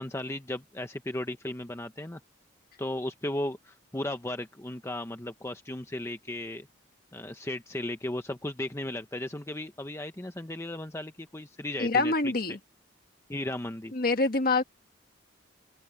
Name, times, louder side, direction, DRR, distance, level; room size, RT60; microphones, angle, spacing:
voice 1, 0.0-2.2 2.8-6.7 7.1-12.3 13.3-13.9, left 1 dB, 15° left, 0.8 m, -35 dB
voice 2, 11.8-12.6 13.9-14.6, left 3 dB, 50° left, 1.7 m, -25 dB
open air
head